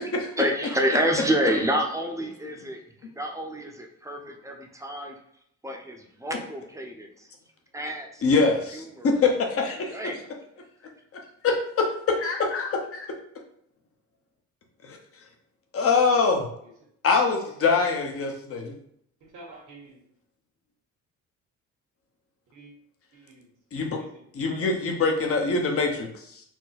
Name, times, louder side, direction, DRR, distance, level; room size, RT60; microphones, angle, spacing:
voice 1, 0.0-2.8 3.1-5.2 5.6-7.3 7.7-8.4 8.7-9.2 9.9-10.3, equal, 10° right, 2 dB, 0.7 m, -28 dB
voice 2, 8.2-8.8 9.4-10.0 11.4-11.5 12.1-13.1 14.9-15.0 15.7-16.5 17.0-18.8 23.7-24.0 24.3-26.4, left 4 dB, 50° left, 2 dB, 1.0 m, -24 dB
voice 3, 17.6-17.9 18.6-18.7 19.2-20.0 22.5-22.7 23.1-23.5 23.7-25.2 25.5-25.7, right 3 dB, 80° right, -3 dB, 1.5 m, -48 dB
4.4 x 2.1 x 4.2 m, 0.70 s
cardioid pair, 90°, 30 cm